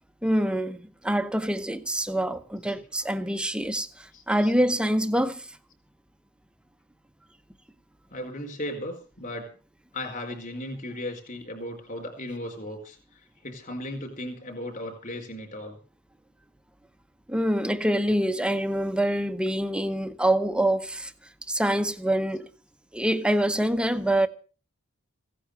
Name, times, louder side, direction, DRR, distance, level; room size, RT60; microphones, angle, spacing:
voice 1, 0.2-5.5 17.3-21.1 21.5-22.5 22.9-24.3, right 1 dB, 5° right, 0.8 m, -25 dB
voice 2, 4.1-4.5 8.1-9.5 9.9-15.8, left 1 dB, 40° left, 4.5 m, -36 dB
16.5 x 9.9 x 6.6 m
head